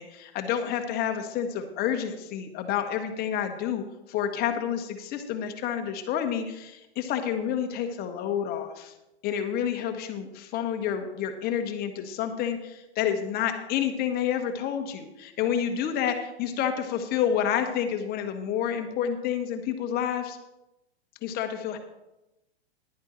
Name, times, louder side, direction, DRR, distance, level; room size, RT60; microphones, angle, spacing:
voice 1, 0.0-3.8 4.1-8.9 9.2-20.4 21.2-21.8, left 9 dB, 30° left, 6 dB, 1.2 m, -29 dB
10.5 x 10.0 x 4.3 m, 0.94 s
hypercardioid pair, 135°, 33 cm